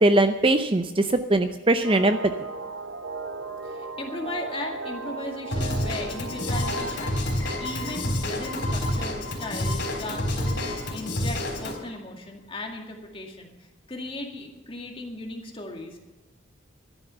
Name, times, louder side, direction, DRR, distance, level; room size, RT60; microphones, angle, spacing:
voice 1, 0.0-2.2, right 2 dB, 25° right, 9 dB, 0.5 m, -21 dB
sound 1, 1.8-6.9, right 3 dB, 70° right, 1.2 m, -36 dB
voice 2, 3.6-10.6 10.9-13.5 13.9-16.0, left 2 dB, 25° left, 1 dB, 2.1 m, -37 dB
Drum kit / Drum, 5.5-11.7, left 1 dB, 55° left, 3.9 m, -29 dB
sound 2, 6.5-12.0, left 2 dB, 10° left, 3.6 m, -40 dB
14.0 x 11.0 x 6.8 m, 1.1 s
head